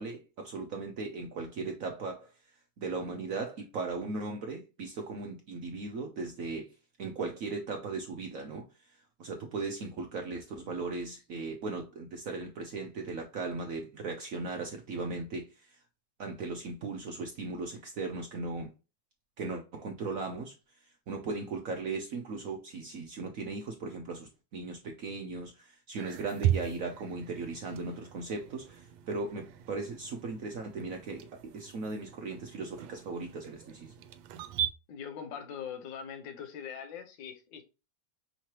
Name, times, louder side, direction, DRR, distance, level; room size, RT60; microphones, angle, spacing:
voice 1, 0.0-2.3 2.8-6.7 7.0-15.8 16.2-18.7 19.4-20.5 20.8-33.9, right 3 dB, 65° right, 0.8 m, -38 dB
sound 1, 26.0-34.7, right 11 dB, 90° right, 1.4 m, -37 dB
voice 2, 34.9-37.6, left 7 dB, 75° left, 1.5 m, -42 dB
5.6 x 3.1 x 2.9 m
omnidirectional pair, 2.1 m